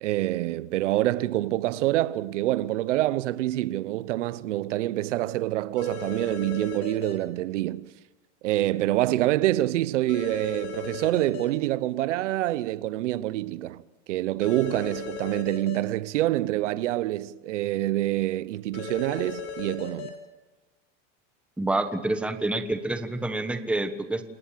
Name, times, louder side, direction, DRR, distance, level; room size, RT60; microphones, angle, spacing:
voice 1, 0.0-7.9 8.4-13.8 14.1-20.1, right 15 dB, 80° right, 0.9 m, -26 dB
sound 1, 5.8-7.1 10.1-11.4 14.4-15.8 18.7-20.1, left 6 dB, 40° left, 4.7 m, -37 dB
voice 2, 21.6-24.2, right 2 dB, 5° right, 1.2 m, -27 dB
28.0 x 19.0 x 7.6 m
supercardioid pair, 160°, 36 cm